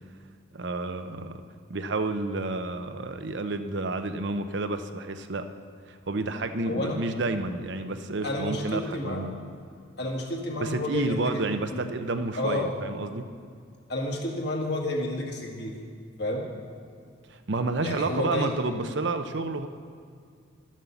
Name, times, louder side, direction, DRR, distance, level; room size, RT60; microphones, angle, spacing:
voice 1, 0.5-1.4 1.7-5.5 5.9-9.3 10.6-13.3 17.3-19.7, right 2 dB, 65° right, 8 dB, 0.7 m, -30 dB
voice 2, 6.7-7.0 8.2-9.2 10.0-11.4 11.7-11.8 12.4-12.7 13.9-15.7 16.2-16.5 17.8-18.5, left 1 dB, 60° left, -1 dB, 1.9 m, -30 dB
12.0 x 7.4 x 7.0 m, 2.2 s
head